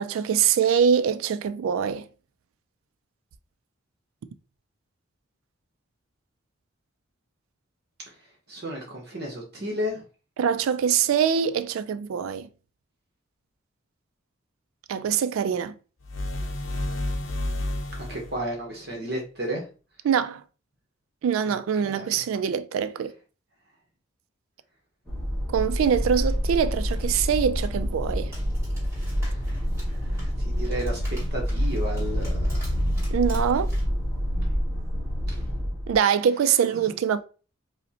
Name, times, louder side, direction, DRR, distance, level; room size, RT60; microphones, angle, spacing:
voice 1, 0.0-2.0 10.4-12.5 14.9-15.7 20.0-20.4 21.2-23.1 25.5-28.3 33.1-33.7 35.9-37.2, right 7 dB, 90° right, 0.3 m, -24 dB
voice 2, 8.5-10.0 18.0-19.6 21.5-21.6 21.8-22.2 30.1-32.8 35.3-35.4 36.7-36.9, equal, 50° right, 0.9 m, -33 dB
sound 1, 16.0-18.4, left 1 dB, 75° left, 0.6 m, -30 dB
sound 2, 25.1-36.0, equal, 5° left, 1.4 m, -27 dB
sound 3, 25.9-33.8, equal, 10° right, 2.0 m, -50 dB
5.0 x 2.1 x 2.8 m
head